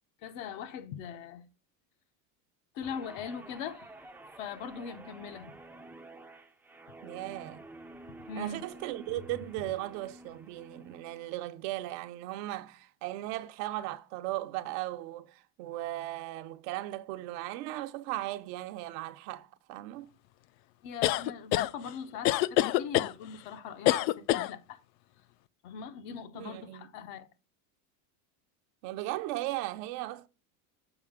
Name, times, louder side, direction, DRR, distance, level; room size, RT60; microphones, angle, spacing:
voice 1, 0.2-1.5 2.7-3.9 4.4-5.6 8.3-8.6 20.8-24.8 25.6-27.3, left 6 dB, 65° left, 1.0 m, -41 dB
Guitar, 2.8-11.4 11.8-12.1, right 2 dB, 5° right, 0.4 m, -50 dB
voice 2, 7.0-7.7 8.4-20.1 26.3-26.9 28.8-30.3, right 16 dB, 70° right, 0.8 m, -37 dB
sound 1, 21.0-21.7 22.2-23.1 23.9-24.5, left 15 dB, 85° left, 0.5 m, -25 dB
7.1 x 5.2 x 3.5 m
supercardioid pair, 115°, 49 cm